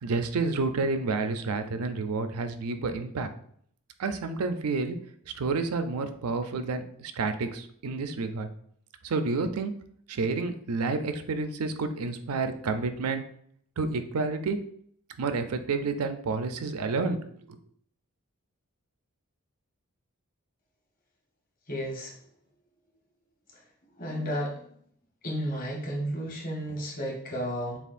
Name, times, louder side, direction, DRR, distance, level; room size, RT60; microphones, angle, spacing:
voice 1, 0.0-3.3 4.0-5.0 5.3-8.5 9.0-9.7 10.1-13.2 13.8-14.6 15.2-17.2 17.5-17.6, right 4 dB, 80° right, 8 dB, 0.5 m, -29 dB
voice 2, 21.7-22.1 24.0-24.6 25.2-27.8, equal, 40° left, -2 dB, 1.1 m, -32 dB
6.8 x 2.4 x 2.5 m, 0.63 s
head